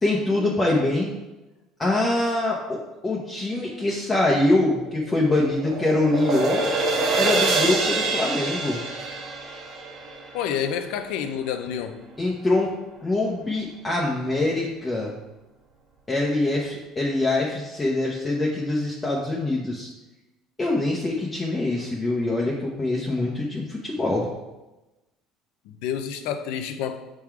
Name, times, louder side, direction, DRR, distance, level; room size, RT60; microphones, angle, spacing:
voice 1, 0.0-1.1 1.8-6.6 7.1-8.8 12.2-12.7 13.0-15.1 16.1-19.9 20.6-24.3, left 2 dB, 15° left, -3 dB, 0.9 m, -24 dB
sound 1, 4.7-11.0, right 3 dB, 45° right, 1.2 m, -26 dB
voice 2, 10.3-12.0 25.7-27.0, left 8 dB, 75° left, 8 dB, 0.6 m, -29 dB
6.3 x 3.8 x 4.6 m, 1.0 s
cardioid pair, 125°, 0 cm